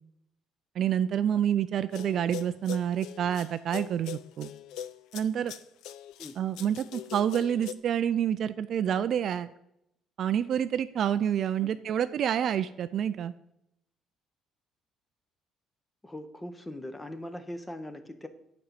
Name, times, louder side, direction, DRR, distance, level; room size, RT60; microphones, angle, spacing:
voice 1, 0.8-4.5 5.1-5.5 6.4-9.5 10.2-13.3, right 9 dB, 45° right, 13 dB, 0.3 m, -28 dB
sound 1, 1.9-7.7, left 10 dB, 80° left, 0.5 m, -41 dB
voice 2, 16.0-18.3, left 1 dB, 10° left, 10 dB, 0.7 m, -40 dB
9.5 x 5.2 x 7.3 m, 0.80 s
cardioid pair, 170°, 0 cm